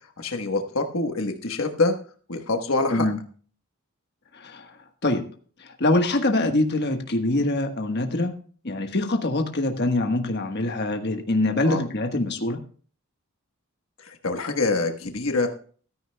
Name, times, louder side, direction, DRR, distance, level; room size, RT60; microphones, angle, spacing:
voice 1, 0.2-1.9 2.3-3.1 11.6-11.8 14.0-15.5, left 3 dB, 65° left, 4 dB, 1.3 m, -25 dB
voice 2, 4.3-4.8 5.0-5.2 5.6-8.3 8.6-12.6, left 2 dB, 50° left, 4 dB, 1.4 m, -24 dB
15.0 x 13.5 x 2.3 m, 0.43 s
head